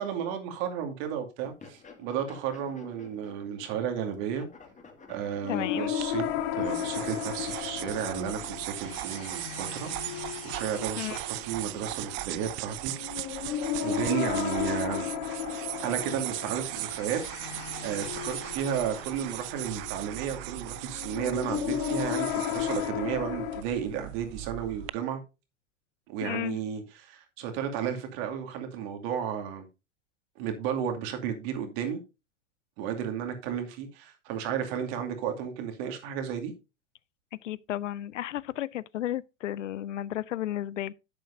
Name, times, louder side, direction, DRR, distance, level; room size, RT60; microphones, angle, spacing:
voice 1, 0.0-4.5 5.1-6.2 6.5-12.9 13.8-15.1 15.8-25.2 26.1-29.7 30.4-32.0 32.8-36.5, right 8 dB, 55° right, 2.5 m, -33 dB
sound 1, 1.5-3.7 3.9-6.2, left 4 dB, 20° left, 2.2 m, -51 dB
sound 2, 5.4-23.6, left 10 dB, 55° left, 1.3 m, -34 dB
voice 2, 5.5-5.9 11.0-11.2 26.2-26.6 37.4-40.9, left 12 dB, 85° left, 0.6 m, -33 dB
sound 3, 6.0-24.9, right 21 dB, 35° right, 0.4 m, -38 dB
10.5 x 7.8 x 2.7 m
hypercardioid pair, 95°, 36 cm